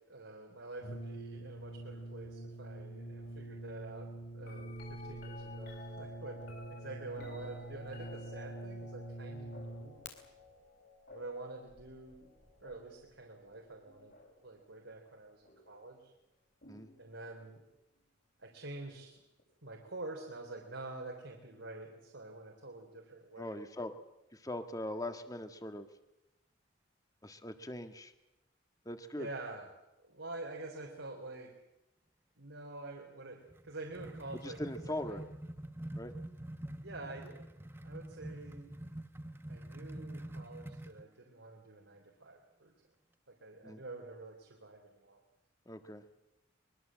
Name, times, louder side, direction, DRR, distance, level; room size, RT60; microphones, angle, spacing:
voice 1, 0.1-4.1 4.3-6.4 6.7-10.0 11.1-12.3 12.6-14.1 14.4-16.1 17.0-17.6 18.4-19.2 19.6-23.6 29.1-29.7 30.0-31.5 32.4-34.6 35.0-35.2 36.8-37.5 37.8-38.7 39.5-42.7 43.3-45.2, right 2 dB, 85° right, 0 dB, 3.7 m, -47 dB
Brass instrument, 0.8-10.1, right 1 dB, 75° left, 3.9 m, -45 dB
sound 1, 4.4-14.5 15.4-15.9 16.6-17.6 19.4-19.5, left 2 dB, 60° left, 7.4 m, -54 dB
voice 2, 23.4-23.9 24.3-25.9 27.2-28.1 28.8-29.3 34.4-35.2 35.9-36.1 43.6-43.8 45.6-46.0, left 1 dB, 20° left, 7 dB, 1.6 m, -41 dB
sound 2, 33.5-41.0, right 1 dB, 10° right, 0.8 m, -46 dB
23.5 x 22.5 x 7.6 m, 0.93 s
head